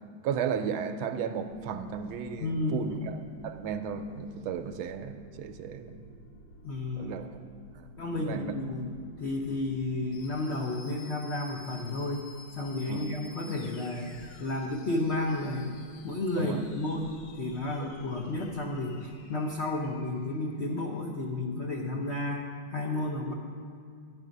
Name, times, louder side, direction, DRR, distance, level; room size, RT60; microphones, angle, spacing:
voice 1, 0.2-6.0 6.9-7.4 7.8-8.5 12.9-13.1 16.4-16.7 17.8-17.9, right 7 dB, 85° right, 8 dB, 1.4 m, -35 dB
sound 1, 1.5-20.8, left 1 dB, 60° left, 1.0 m, -52 dB
voice 2, 2.4-2.9 6.6-7.2 8.0-8.9 9.2-12.3 12.5-14.1 14.4-15.7 16.0-23.3, left 2 dB, 85° left, 0 dB, 0.6 m, -32 dB
11.0 x 8.2 x 5.2 m, 2.3 s
omnidirectional pair, 2.3 m